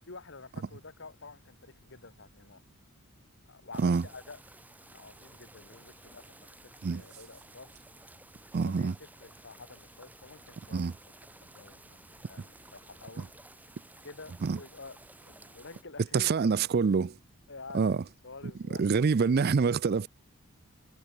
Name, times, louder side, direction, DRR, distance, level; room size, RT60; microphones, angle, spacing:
voice 1, 0.1-2.6 3.5-4.4 4.9-7.7 8.6-10.9 11.4-13.3 14.0-16.3 17.5-18.9, left 3 dB, 55° left, 1.7 m, -49 dB
sound 1, 3.7-15.8, right 2 dB, 5° right, 1.2 m, -55 dB
voice 2, 8.5-8.9 10.7-10.9 14.4-14.6 16.1-17.1 17.7-18.0 18.8-20.1, right 5 dB, 45° right, 0.4 m, -26 dB
head